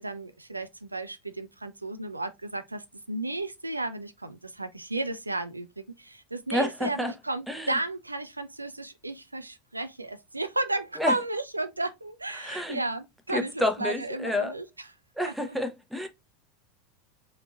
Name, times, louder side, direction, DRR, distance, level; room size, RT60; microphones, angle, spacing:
voice 1, 0.0-14.9 15.2-15.6, right 2 dB, 85° right, 0.4 m, -33 dB
voice 2, 6.5-7.1 7.5-7.8 11.0-11.1 12.3-12.8 13.3-14.5 15.2-16.1, left 1 dB, ahead, 0.7 m, -29 dB
3.7 x 2.4 x 2.5 m
figure-of-eight pair, 80°, 0 cm